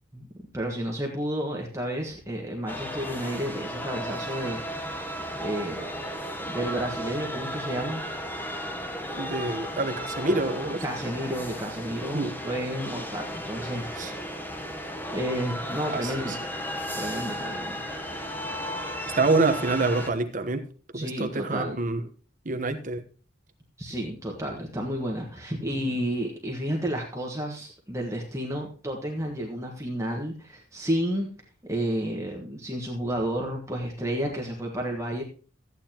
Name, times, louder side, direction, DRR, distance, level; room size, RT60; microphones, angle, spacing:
voice 1, 0.5-5.9 6.5-8.0 10.8-14.2 15.1-16.4 16.9-17.9 20.9-21.8 23.8-31.3 31.7-35.2, equal, 15° right, 0 dB, 1.4 m, -31 dB
sound 1, 2.7-20.1, equal, 10° left, 1.0 m, -34 dB
voice 2, 9.2-10.8 12.1-12.3 14.0-14.1 15.9-16.4 19.2-20.7 20.9-22.0 22.4-23.0, right 3 dB, 40° right, 7 dB, 1.1 m, -26 dB
14.0 x 9.1 x 3.0 m, 0.39 s
head